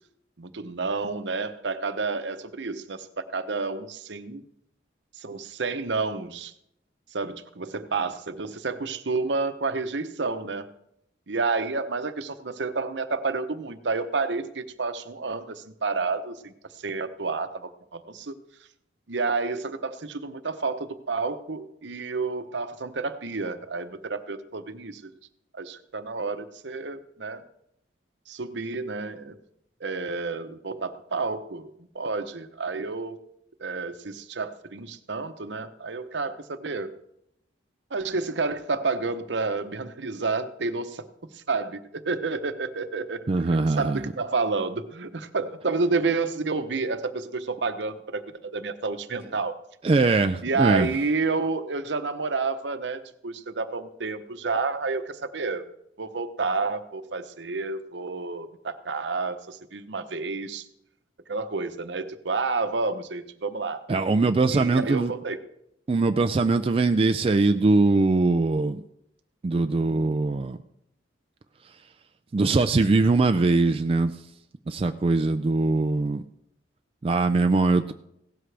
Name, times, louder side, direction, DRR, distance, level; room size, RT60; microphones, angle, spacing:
voice 1, 0.4-4.4 5.1-6.5 7.1-10.7 11.3-18.3 19.1-25.1 25.5-27.4 28.3-29.4 29.8-33.2 33.6-36.9 37.9-41.1 41.3-49.6 50.4-55.6 56.0-60.7 61.3-63.8 64.5-65.4, right 4 dB, 70° right, 10 dB, 0.8 m, -30 dB
voice 2, 43.3-44.0 49.8-50.9 63.9-65.1 65.9-68.8 69.4-70.6 72.3-74.1 74.7-76.2 77.0-77.9, right 3 dB, 30° right, 7 dB, 0.4 m, -22 dB
16.5 x 12.5 x 3.4 m, 0.77 s
head